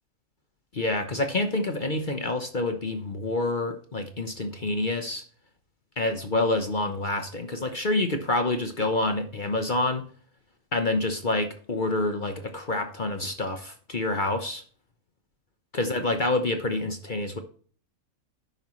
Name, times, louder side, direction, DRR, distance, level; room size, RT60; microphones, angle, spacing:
voice 1, 0.7-5.2 6.0-10.0 10.7-14.6 15.7-17.4, left 2 dB, 40° left, 6 dB, 1.1 m, -27 dB
11.0 x 9.4 x 3.1 m, 0.44 s
omnidirectional pair, 1.4 m